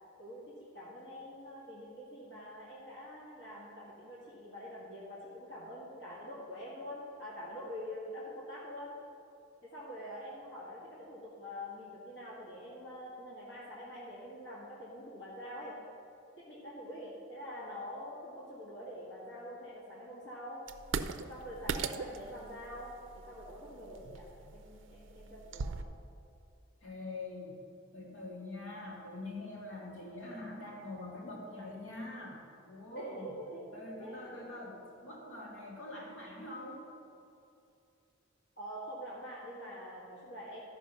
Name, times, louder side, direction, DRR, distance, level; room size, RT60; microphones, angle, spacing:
voice 1, 0.2-8.9 9.6-15.8 16.5-20.6 21.3-25.9 33.0-34.3 38.6-40.6, equal, 65° left, -6 dB, 1.9 m, -45 dB
sound 1, 20.7-25.8, right 5 dB, 65° right, 0.4 m, -40 dB
voice 2, 26.8-27.6 27.9-32.4 32.6-33.4 33.7-36.9, left 2 dB, 80° left, -3 dB, 2.2 m, -44 dB
13.5 x 5.4 x 5.6 m, 2.7 s
head